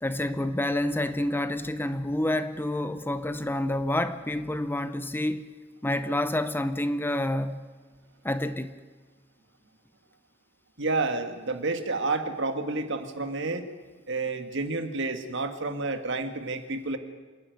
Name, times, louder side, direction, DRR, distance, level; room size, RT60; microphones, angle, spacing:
voice 1, 0.0-5.5 5.8-7.7 8.2-8.7, left 1 dB, 10° left, 0.7 m, -28 dB
voice 2, 10.8-13.7 14.1-17.0, right 3 dB, 60° right, 1.7 m, -30 dB
26.5 x 11.5 x 9.3 m
head